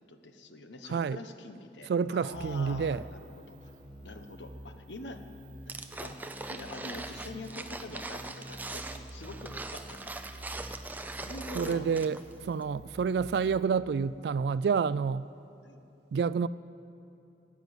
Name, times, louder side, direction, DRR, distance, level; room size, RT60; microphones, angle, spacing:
voice 1, 0.1-3.2 3.5-5.2 6.0-6.2 6.5-10.1 11.2-11.9 15.6-15.8, left 2 dB, 90° left, 1.1 m, -45 dB
voice 2, 1.9-3.0 11.5-12.2 12.4-15.3 16.1-16.5, right 6 dB, 65° right, 0.3 m, -28 dB
sound 1, 2.3-13.7, right 1 dB, 25° right, 1.4 m, -48 dB
sound 2, 5.7-12.3 12.6-12.7, right 2 dB, 10° right, 0.5 m, -41 dB
15.5 x 9.5 x 7.9 m
head